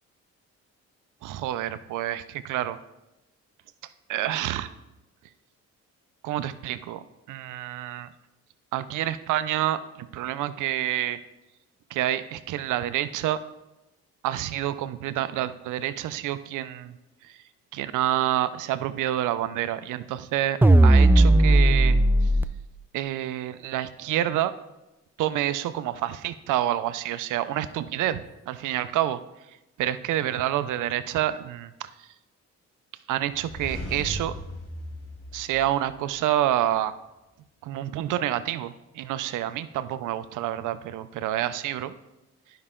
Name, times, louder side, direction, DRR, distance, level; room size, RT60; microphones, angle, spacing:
voice 1, 1.2-2.8 4.1-4.7 6.2-7.0 7.3-8.1 8.7-11.2 11.9-13.4 14.2-17.0 17.7-22.0 22.9-24.5 25.2-29.2 29.8-31.9 33.1-34.3 35.3-36.9 37.6-41.9, right 13 dB, 85° right, 13 dB, 0.5 m, -28 dB
sound 1, 20.6-22.4, right 1 dB, 5° right, 0.3 m, -16 dB
sound 2, 33.2-36.2, equal, 45° left, 3.1 m, -38 dB
11.0 x 5.5 x 3.7 m, 0.96 s
cardioid pair, 90°, 30 cm